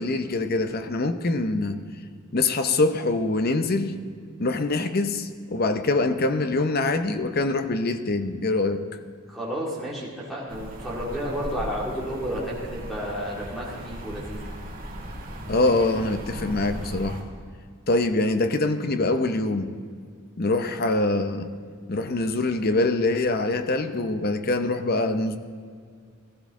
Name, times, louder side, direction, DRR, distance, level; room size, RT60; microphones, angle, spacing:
voice 1, 0.0-1.8 2.3-4.0 4.4-8.8 15.5-17.2 17.9-19.7 20.4-21.5 21.9-25.4, left 2 dB, 45° left, 9 dB, 0.7 m, -24 dB
voice 2, 9.3-14.5, equal, ahead, -6 dB, 2.4 m, -31 dB
sound 1, 10.5-17.2, equal, 40° right, 2.2 m, -37 dB
15.5 x 13.5 x 3.7 m, 2.1 s
head